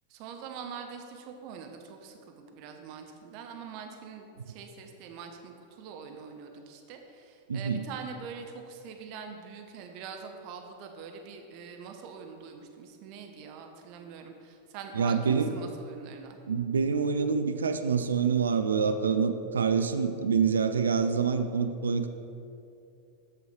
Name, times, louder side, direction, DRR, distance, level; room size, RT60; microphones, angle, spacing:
voice 1, 0.1-16.4, right 6 dB, 45° right, 4 dB, 0.9 m, -43 dB
voice 2, 7.5-7.8 14.9-15.5 16.5-22.1, right 5 dB, 70° right, 8 dB, 0.4 m, -26 dB
8.3 x 6.2 x 4.4 m, 2.6 s
figure-of-eight pair, 90°, 0 cm